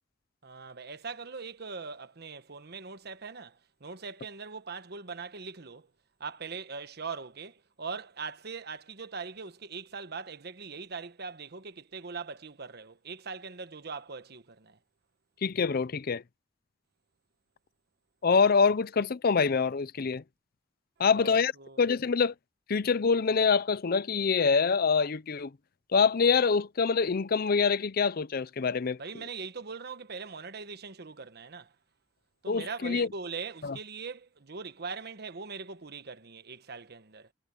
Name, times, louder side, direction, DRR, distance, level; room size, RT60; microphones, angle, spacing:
voice 1, 0.4-5.9 6.2-14.8 21.1-21.8 29.0-31.7 32.4-37.3, right 5 dB, 60° right, 1.2 m, -41 dB
voice 2, 15.4-16.2 18.2-20.2 21.0-21.5 21.8-22.3 22.7-25.5 25.9-29.0 32.5-33.1 33.6-33.8, left 5 dB, 50° left, 0.6 m, -25 dB
head